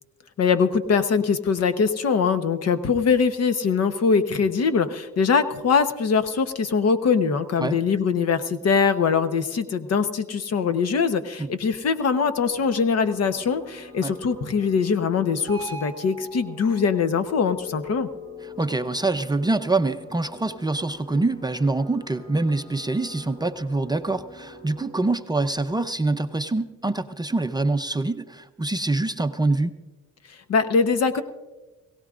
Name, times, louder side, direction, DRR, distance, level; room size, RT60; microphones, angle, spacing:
voice 1, 0.4-18.1 30.5-31.2, left 5 dB, 55° left, 10 dB, 1.0 m, -22 dB
sound 1, 12.3-24.9, left 1 dB, 15° left, 5.7 m, -43 dB
voice 2, 18.4-29.7, right 2 dB, 15° right, 8 dB, 0.5 m, -25 dB
22.0 x 17.0 x 2.5 m, 1.2 s
cardioid pair, 90°, 30 cm